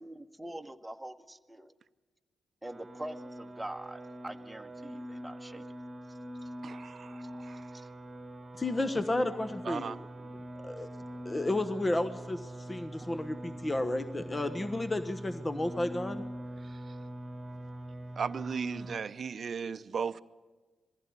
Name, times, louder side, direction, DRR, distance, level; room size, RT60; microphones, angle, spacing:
voice 1, 0.0-1.7 2.6-5.6 6.4-6.5 7.2-7.3 7.7-7.9 10.2-10.4 12.9-13.1, right 1 dB, 10° right, 1.2 m, -44 dB
sound 1, 2.6-19.0, right 1 dB, 35° right, 1.3 m, -43 dB
voice 2, 6.6-7.8 9.7-10.0 18.2-20.2, right 6 dB, 55° right, 0.6 m, -36 dB
voice 3, 8.6-10.0 10.6-10.9 11.2-16.2, left 2 dB, 25° left, 1.2 m, -32 dB
21.5 x 15.5 x 9.5 m
hypercardioid pair, 45°, 0 cm